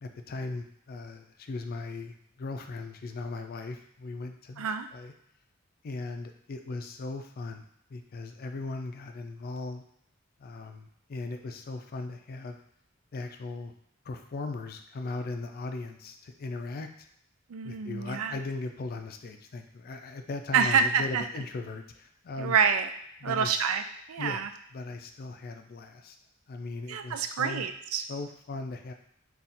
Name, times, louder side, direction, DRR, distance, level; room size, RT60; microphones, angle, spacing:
voice 1, 0.0-5.1 5.8-9.8 10.4-12.6 13.1-13.7 14.1-17.1 17.6-22.5 23.2-23.7 24.2-24.4 24.7-26.2 26.5-27.6 28.1-28.9, left 3 dB, 45° left, 6 dB, 0.4 m, -38 dB
voice 2, 17.5-18.4 20.5-21.2 22.4-22.9 23.2-24.5 26.9-28.0, right 6 dB, 85° right, 8 dB, 0.4 m, -27 dB
3.8 x 2.3 x 4.2 m, 0.72 s
head